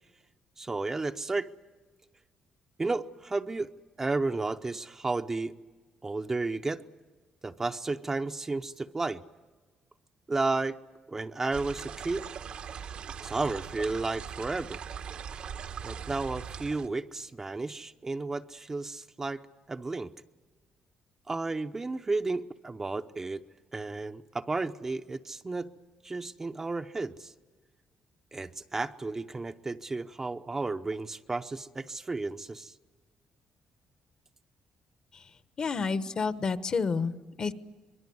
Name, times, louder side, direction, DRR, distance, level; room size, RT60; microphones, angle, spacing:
voice 1, 0.6-1.5 2.8-3.7 4.0-5.5 6.0-6.8 7.4-9.2 10.3-10.8 11.1-12.2 13.2-14.8 15.8-19.4 19.7-20.1 21.3-23.4 23.7-25.7 26.0-27.3 28.3-32.7, right 3 dB, 20° right, 8 dB, 0.7 m, -32 dB
sound 1, 11.5-16.9, right 7 dB, 60° right, 1.1 m, -40 dB
voice 2, 35.6-37.5, left 4 dB, 40° left, 13 dB, 1.1 m, -30 dB
25.0 x 22.0 x 9.5 m, 1.3 s
cardioid pair, 120°, 2 cm